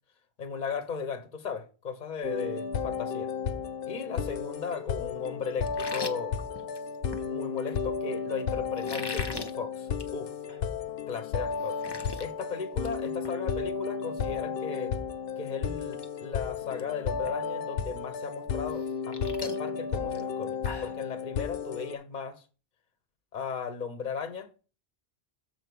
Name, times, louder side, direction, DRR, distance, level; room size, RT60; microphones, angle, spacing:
voice 1, 0.4-3.3 3.9-6.3 7.2-10.3 11.1-11.8 12.2-15.0 15.4-22.4 23.3-24.5, left 5 dB, 45° left, 1.0 m, -36 dB
sound 1, 2.2-22.0, left 6 dB, 65° left, 0.8 m, -33 dB
sound 2, 5.7-7.2 8.7-9.5 9.9-10.1 10.5-10.6 11.1-11.2 11.5-12.2 12.6-12.9 13.2-13.4 15.2-15.3 15.8-16.1 16.3-16.8 17.3-17.4 18.7-21.0, left 3 dB, 30° left, 0.6 m, -40 dB
6.8 x 4.4 x 6.2 m
omnidirectional pair, 1.1 m